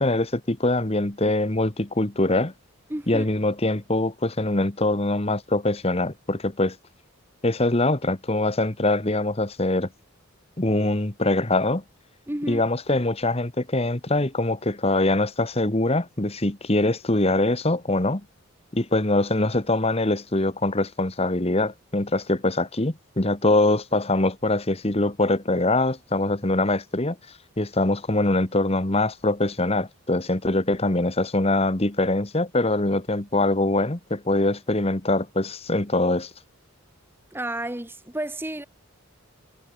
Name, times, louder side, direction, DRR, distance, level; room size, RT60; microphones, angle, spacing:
voice 1, 0.0-2.5 3.1-6.8 7.4-9.9 10.6-11.8 12.5-18.2 18.7-27.2 27.6-36.3, left 2 dB, 30° left, 1.4 m, -23 dB
voice 2, 2.9-3.3 12.3-12.6 37.3-38.6, right 1 dB, 10° right, 1.0 m, -31 dB
head